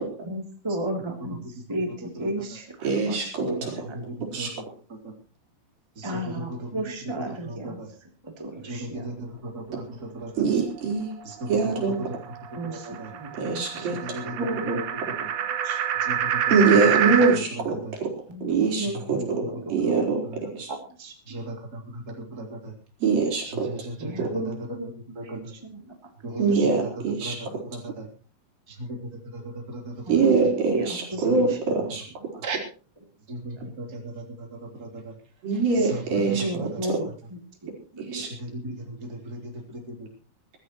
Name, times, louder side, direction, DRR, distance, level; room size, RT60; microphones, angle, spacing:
voice 1, 0.2-1.4 1.7-1.9 2.2-3.6 6.0-7.8 8.4-9.1 9.7-9.8 12.6-12.9 13.2-13.3 13.7-14.3 15.6-15.8 18.3-19.8 21.0-21.1 24.0-24.9 25.2-25.9 26.3-26.6 30.0-31.8 36.2-37.1 37.6-38.3 38.6-38.8, right 1 dB, 10° right, 2 dB, 2.6 m, -33 dB
voice 2, 2.8-3.9 4.3-4.5 10.4-11.1 11.5-12.1 13.4-14.8 16.5-18.1 18.4-19.4 19.7-20.7 23.0-23.7 24.2-24.3 26.4-27.6 30.1-32.0 35.4-37.0 38.0-38.3, right 4 dB, 85° right, 0 dB, 6.3 m, -24 dB
voice 3, 3.7-4.6 4.9-5.1 6.0-7.9 8.5-10.4 11.2-11.7 12.1-12.2 12.6-13.1 13.8-14.6 16.0-16.4 17.7-17.9 18.9-19.0 19.8-19.9 21.3-22.7 23.4-24.8 25.2-25.5 26.2-26.4 27.2-28.1 28.7-29.0 29.3-30.0 31.3-31.4 32.4-32.6 33.3-35.2 35.8-36.8 38.4-40.1, right 1 dB, 25° right, 1 dB, 3.7 m, -37 dB
sound 1, 10.7-17.4, right 9 dB, 60° right, 2.2 m, -28 dB
23.5 x 13.0 x 3.1 m, 0.37 s
omnidirectional pair, 4.0 m